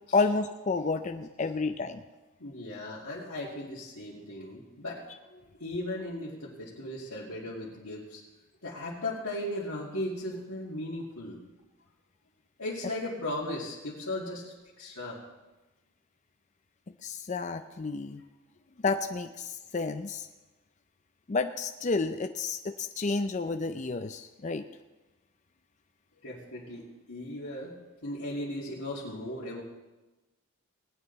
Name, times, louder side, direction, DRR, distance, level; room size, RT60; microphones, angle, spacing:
voice 1, 0.1-2.0 17.0-18.2 18.8-20.3 21.3-24.7, left 3 dB, 35° left, 8 dB, 0.4 m, -30 dB
voice 2, 2.4-8.2 8.6-11.4 12.6-15.2 26.2-29.6, left 1 dB, 85° left, -9 dB, 2.4 m, -37 dB
19.0 x 9.0 x 4.1 m, 1.1 s
head